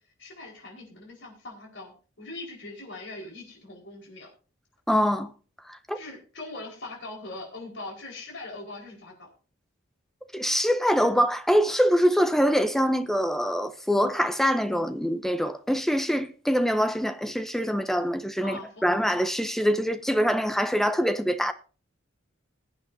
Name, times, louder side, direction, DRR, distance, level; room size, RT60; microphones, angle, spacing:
voice 1, 0.2-4.3 5.9-9.3 18.4-18.8, left 2 dB, 60° left, 4.7 m, -41 dB
voice 2, 4.9-5.3 5.9-6.0 10.3-21.5, equal, ahead, 0.6 m, -24 dB
21.0 x 8.6 x 2.7 m
head